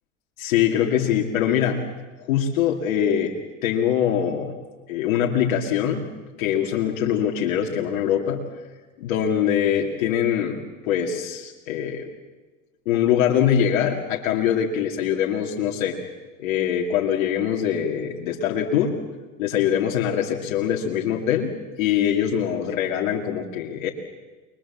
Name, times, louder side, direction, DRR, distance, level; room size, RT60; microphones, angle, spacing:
voice 1, 0.4-1.9 2.2-3.3 3.6-4.5 4.9-6.1 6.4-8.4 9.0-10.6 10.8-12.1 12.9-16.0 16.4-19.0 19.4-23.9, left 9 dB, 75° left, 0 dB, 2.6 m, -23 dB
29.5 x 22.0 x 7.4 m, 1.3 s
hypercardioid pair, 95°, 40 cm